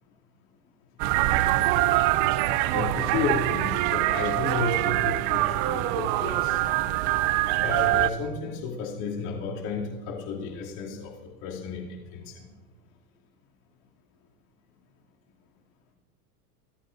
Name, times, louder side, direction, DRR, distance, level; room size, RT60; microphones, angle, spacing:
sound 1, 1.0-8.1, right 16 dB, 40° right, 0.5 m, -24 dB
voice 1, 2.7-6.6 7.6-12.5, left 5 dB, 60° left, -3 dB, 2.9 m, -32 dB
24.5 x 14.5 x 2.6 m, 1.3 s
supercardioid pair, 135°, 46 cm